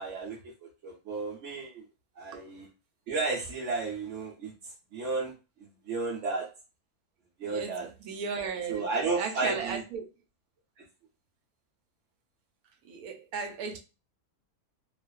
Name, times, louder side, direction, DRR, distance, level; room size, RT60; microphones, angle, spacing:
voice 1, 0.0-1.8 2.2-2.7 3.1-4.5 4.9-5.3 5.6-6.5 7.4-7.9 8.7-9.8 10.8-10.9, right 4 dB, 65° right, 0.9 m, -33 dB
voice 2, 7.4-10.1 12.8-13.8, right 5 dB, 85° right, 1.1 m, -36 dB
2.4 x 2.3 x 2.2 m
omnidirectional pair, 1.6 m